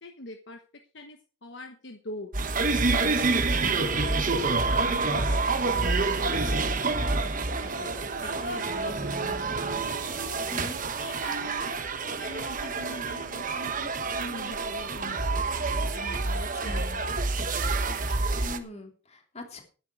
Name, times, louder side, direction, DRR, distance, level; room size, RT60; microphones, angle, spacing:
voice 1, 0.0-2.3 2.7-5.9 6.2-6.6 7.0-7.9 8.2-10.3 11.0-17.0 17.4-17.5 18.1-18.2, left 1 dB, 55° left, 5 dB, 1.2 m, -44 dB
sound 1, 2.3-18.6, right 3 dB, 40° right, 1.1 m, -28 dB
voice 2, 16.5-16.9 18.4-19.6, left 2 dB, 30° left, 3 dB, 2.9 m, -41 dB
12.5 x 10.5 x 4.7 m, 0.36 s
head